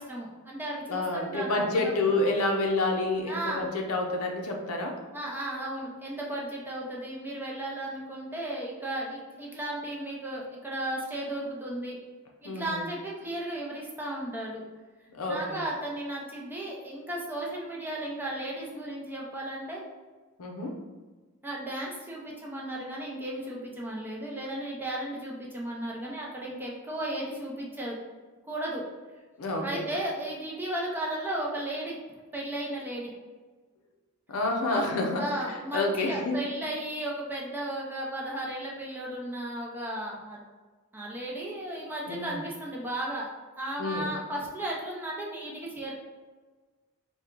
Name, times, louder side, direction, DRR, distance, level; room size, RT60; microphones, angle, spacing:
voice 1, 0.0-1.9 3.3-3.6 5.1-12.0 12.4-14.6 15.3-19.8 21.4-28.0 28.5-28.8 29.6-32.0 32.3-33.1 34.7-34.8 35.2-40.4 40.9-43.3 43.6-45.9, right 1 dB, 10° right, -4 dB, 0.6 m, -35 dB
voice 2, 0.9-5.0 12.4-12.9 15.1-15.6 20.4-20.8 29.4-29.9 34.3-36.4 42.1-42.4 43.8-44.1, left 2 dB, 80° left, 2 dB, 0.6 m, -29 dB
4.2 x 2.3 x 3.7 m, 1.4 s
head